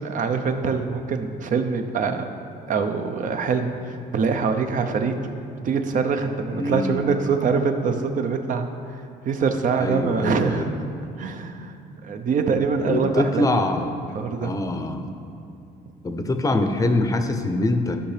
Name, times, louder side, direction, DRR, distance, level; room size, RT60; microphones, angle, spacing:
voice 1, 0.0-2.3 2.7-5.2 5.6-8.7 9.2-10.8 11.2-11.7 12.0-13.5 14.1-14.5, right 5 dB, 50° right, 6 dB, 0.7 m, -24 dB
voice 2, 6.5-7.0 9.8-10.7 12.9-14.0 14.4-15.1 16.0-18.0, left 2 dB, 20° left, 6 dB, 0.6 m, -24 dB
13.0 x 5.6 x 3.4 m, 2.6 s
cardioid pair, 110°, 17 cm